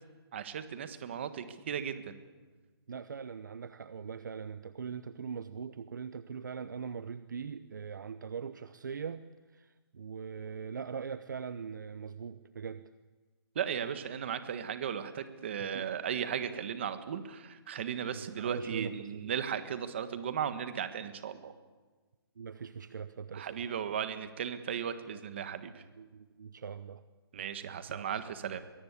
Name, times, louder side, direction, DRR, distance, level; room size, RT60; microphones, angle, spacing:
voice 1, 0.3-2.2 13.5-21.5 23.3-25.8 27.3-28.6, right 8 dB, 25° right, 10 dB, 1.4 m, -36 dB
voice 2, 2.9-9.2 9.5-12.8 15.7-15.9 18.1-19.3 22.4-23.6 26.0-27.0 27.9-28.1, right 6 dB, 50° right, 13 dB, 0.8 m, -41 dB
22.5 x 22.0 x 8.4 m, 1.3 s
hypercardioid pair, 180°, 13 cm